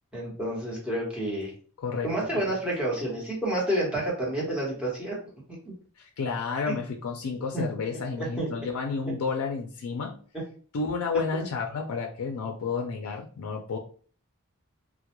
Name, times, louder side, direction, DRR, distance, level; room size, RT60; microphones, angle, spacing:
voice 1, 0.1-1.5 2.0-5.2 6.7-6.8 7.5-7.7 8.2-8.5, right 1 dB, 5° right, -5 dB, 0.9 m, -29 dB
voice 2, 1.8-2.1 2.4-2.5 6.0-10.2 10.7-13.8, left 5 dB, 80° left, 3 dB, 0.4 m, -31 dB
2.2 x 2.1 x 2.9 m, 0.44 s
head